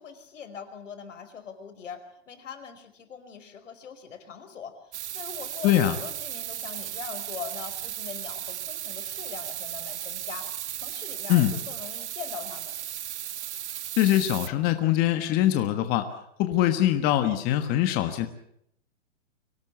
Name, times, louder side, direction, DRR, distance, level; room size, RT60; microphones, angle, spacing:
voice 1, 0.0-12.7, left 6 dB, 80° left, 9 dB, 5.0 m, -42 dB
sound 1, 4.9-14.5, right 11 dB, 65° right, 1.1 m, -36 dB
voice 2, 5.6-6.0 11.3-11.5 14.0-16.1 16.4-18.3, left 13 dB, 25° left, 7 dB, 1.4 m, -23 dB
24.5 x 17.5 x 8.2 m, 0.72 s
hypercardioid pair, 150°, 37 cm